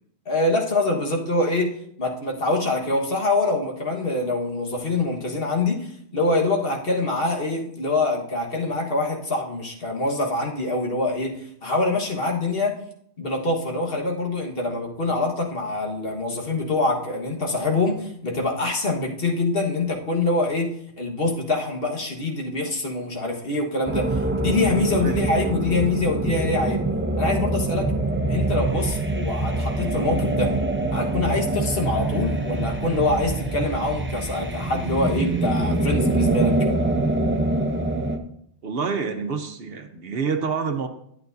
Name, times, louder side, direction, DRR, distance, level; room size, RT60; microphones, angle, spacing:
voice 1, 0.2-1.7 2.0-12.7 13.2-20.7 21.0-26.8 27.2-27.9 28.3-30.5 30.9-36.6, left 2 dB, 55° left, 0 dB, 1.7 m, -25 dB
sound 1, 23.9-38.2, right 2 dB, 15° right, 0.5 m, -24 dB
voice 2, 25.0-25.5 38.6-40.9, right 5 dB, 60° right, 7 dB, 1.0 m, -28 dB
11.5 x 8.7 x 2.6 m, 0.70 s
omnidirectional pair, 1.2 m